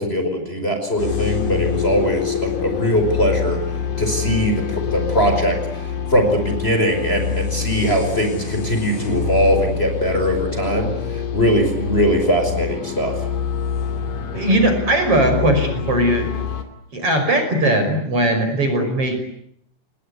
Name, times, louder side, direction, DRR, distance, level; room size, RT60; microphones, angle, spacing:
voice 1, 0.0-3.6 4.0-13.1, equal, 15° left, 5 dB, 5.2 m, -21 dB
sound 1, 1.0-16.6, left 7 dB, 85° left, 4.6 m, -26 dB
voice 2, 14.3-16.3 16.9-19.2, right 1 dB, 45° right, 6 dB, 6.4 m, -19 dB
29.5 x 21.0 x 9.6 m, 0.69 s
omnidirectional pair, 3.7 m